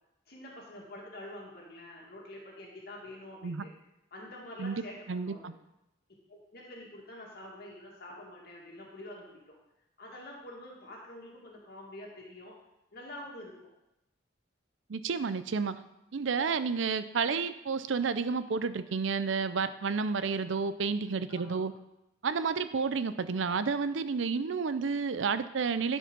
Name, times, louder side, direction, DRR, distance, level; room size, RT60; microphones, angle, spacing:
voice 1, 0.3-3.7 4.1-5.5 6.3-9.6 10.0-12.6 12.9-13.7 16.4-16.5 21.3-21.6, left 1 dB, 55° left, -2 dB, 2.0 m, -47 dB
voice 2, 5.1-5.5 14.9-15.8 16.1-21.7 22.2-26.0, right 5 dB, 75° right, 13 dB, 0.5 m, -31 dB
11.5 x 5.2 x 5.4 m, 0.88 s
head